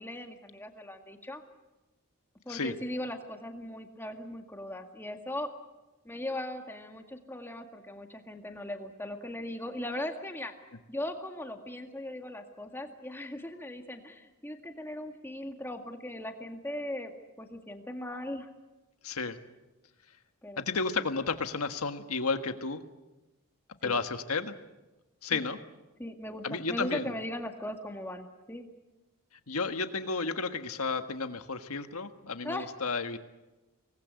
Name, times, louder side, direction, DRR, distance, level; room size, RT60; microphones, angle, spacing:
voice 1, 0.0-1.4 2.5-5.5 6.0-10.5 10.9-17.1 17.4-18.5 20.4-20.6 23.8-24.0 25.3-25.4 26.0-28.7 32.4-32.7, left 1 dB, 10° left, 4 dB, 2.0 m, -39 dB
voice 2, 19.0-19.4 20.6-22.8 23.8-24.5 25.2-25.6 26.4-27.1 29.5-33.2, left 4 dB, 90° left, 8 dB, 1.6 m, -32 dB
25.0 x 19.5 x 8.3 m, 1.1 s
head